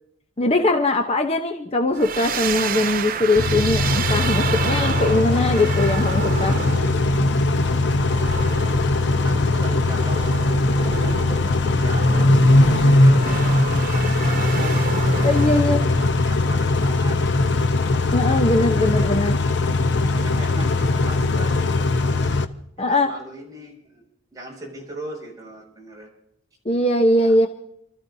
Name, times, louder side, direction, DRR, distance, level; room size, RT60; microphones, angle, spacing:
voice 1, 0.4-6.6 15.2-15.8 18.1-19.4 22.8-23.1 26.6-27.5, left 2 dB, 30° left, 5 dB, 0.8 m, -21 dB
sound 1, 1.9-16.1, right 6 dB, 45° right, 0.6 m, -30 dB
Car / Idling / Accelerating revving vroom, 3.4-22.5, left 2 dB, 60° left, 0.8 m, -20 dB
voice 2, 7.9-8.7 9.2-17.5 18.7-19.3 20.2-21.9 22.8-26.1 27.2-27.4, right 1 dB, 20° right, -3 dB, 6.1 m, -38 dB
28.0 x 13.5 x 2.8 m, 0.75 s
head